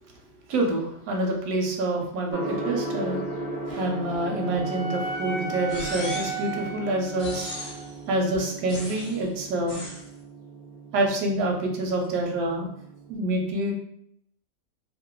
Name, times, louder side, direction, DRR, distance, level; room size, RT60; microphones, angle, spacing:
voice 1, 0.5-3.2 3.7-7.7 8.1-9.8 10.9-12.7 13.1-13.7, right 1 dB, 80° right, 1 dB, 1.1 m, -27 dB
Gong, 2.3-13.1, right 2 dB, 70° left, 0.5 m, -37 dB
Wind instrument woodwind instrument, 3.7-7.9, right 4 dB, 45° right, 0.4 m, -35 dB
sound 1, 5.7-6.5 7.2-7.9 8.7-9.2 9.7-10.1, left 1 dB, 50° left, 1.0 m, -37 dB
2.7 x 2.2 x 2.2 m, 0.73 s
omnidirectional pair, 1.5 m